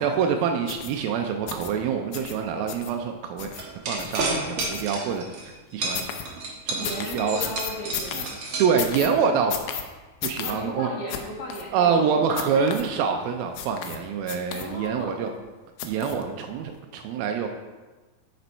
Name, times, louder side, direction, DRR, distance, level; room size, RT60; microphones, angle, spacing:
voice 1, 0.0-5.3 5.7-6.0 6.7-7.4 8.2-8.3 8.6-9.6 10.2-10.9 11.7-15.3 15.8-17.5, right 6 dB, 90° right, 4 dB, 2.4 m, -26 dB
sound 1, 0.7-0.9 1.5-1.7 2.1-2.3 2.7-2.9 3.4-3.6 4.0-4.2 4.6-5.2 5.9-6.2 6.8-8.3 8.8-9.1 9.5-9.8 10.2-10.5 11.1-11.2 11.5-11.6 12.4-12.8 13.6-14.0 14.3-14.9 15.8-16.2 16.7-16.8, left 9 dB, 80° left, 1.7 m, -33 dB
sound 2, 3.6-5.5 5.8-9.2, right 3 dB, 65° right, 1.3 m, -30 dB
voice 2, 6.8-8.4 10.4-12.8 14.5-15.3, left 1 dB, 65° left, -2 dB, 2.1 m, -36 dB
6.8 x 6.1 x 4.4 m, 1.2 s
omnidirectional pair, 4.2 m